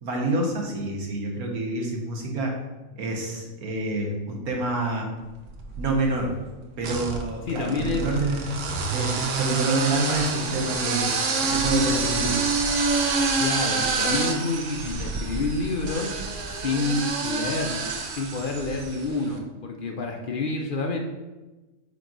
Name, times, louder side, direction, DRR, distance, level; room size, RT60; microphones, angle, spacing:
voice 1, 0.0-2.5 2.9-5.1 5.8-6.3 6.8-8.6 8.9-11.1 11.4-12.4, right 2 dB, 80° right, 0 dB, 1.6 m, -27 dB
sound 1, 5.4-6.1 6.8-19.1, right 4 dB, 65° right, 1.0 m, -27 dB
voice 2, 7.5-8.0 13.4-17.9 18.1-21.0, left 3 dB, 55° left, 2 dB, 0.5 m, -28 dB
8.8 x 3.1 x 3.9 m, 1.1 s
omnidirectional pair, 1.5 m